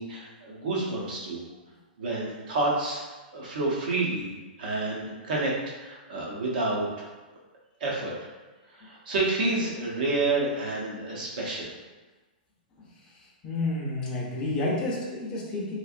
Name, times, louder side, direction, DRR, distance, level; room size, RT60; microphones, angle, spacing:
voice 1, 0.0-1.4 2.0-3.0 3.3-4.3 4.6-7.1 7.8-8.1 8.7-11.7, right 2 dB, 65° right, -3 dB, 0.9 m, -29 dB
voice 2, 13.4-15.8, left 2 dB, 20° left, -5 dB, 0.6 m, -30 dB
3.2 x 2.4 x 2.5 m, 1.2 s
hypercardioid pair, 155°, 5 cm